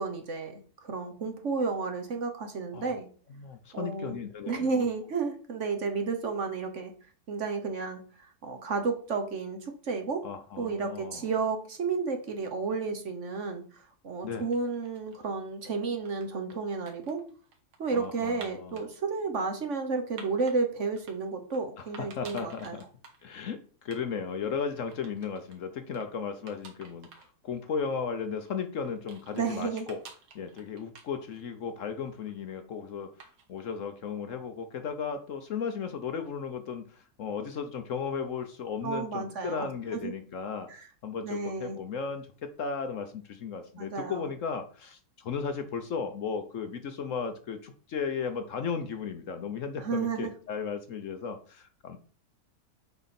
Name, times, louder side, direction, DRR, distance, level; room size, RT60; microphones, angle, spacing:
voice 1, 0.0-3.1 3.7-4.2 4.5-6.9 7.3-10.2 10.6-13.6 14.0-17.2 17.8-22.8 29.3-29.9 38.8-40.1 40.7-40.8 41.2-41.8 43.8-44.3 49.8-50.3, right 4 dB, 50° right, 6 dB, 1.3 m, -32 dB
voice 2, 3.3-4.9 10.2-11.3 14.2-14.5 17.9-18.8 21.8-22.8 23.2-30.0 30.3-33.1 33.5-40.7 41.0-52.0, left 6 dB, 60° left, 8 dB, 1.1 m, -35 dB
sound 1, 14.5-15.3 15.8-18.9 19.4-20.6 21.0-21.6 21.9-23.2 23.5-23.6 23.8-24.0 24.3-25.6 25.9-26.1 26.5-27.3 27.7-27.8 28.4-31.6 31.9-32.5 33.2-33.6, right 4 dB, 85° right, 1.9 m, -51 dB
7.0 x 5.1 x 4.3 m, 0.42 s
omnidirectional pair, 1.7 m